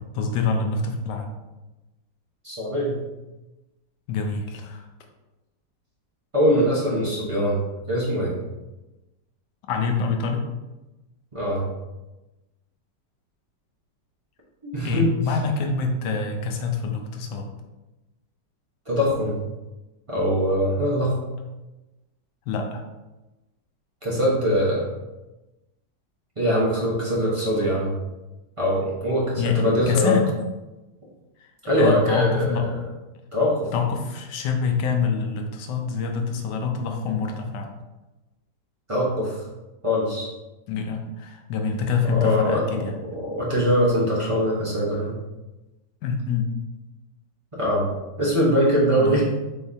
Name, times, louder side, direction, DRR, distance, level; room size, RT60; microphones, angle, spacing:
voice 1, 0.0-1.3 4.1-4.8 9.7-10.5 14.8-17.5 22.5-22.8 29.4-30.3 31.8-32.7 33.7-37.7 40.7-42.9 46.0-46.5 49.0-49.2, left 5 dB, 75° left, 4 dB, 1.2 m, -25 dB
voice 2, 2.4-2.9 6.3-7.6 7.9-8.4 11.3-11.7 14.6-15.1 18.9-19.4 20.1-21.1 24.0-24.9 26.4-28.0 28.6-30.2 31.6-32.8 33.3-33.7 38.9-39.4 39.8-40.3 42.0-42.8 43.1-45.2 47.5-47.9 48.2-49.2, equal, 25° right, -7 dB, 0.7 m, -22 dB
4.4 x 3.5 x 2.7 m, 1.1 s
omnidirectional pair, 1.9 m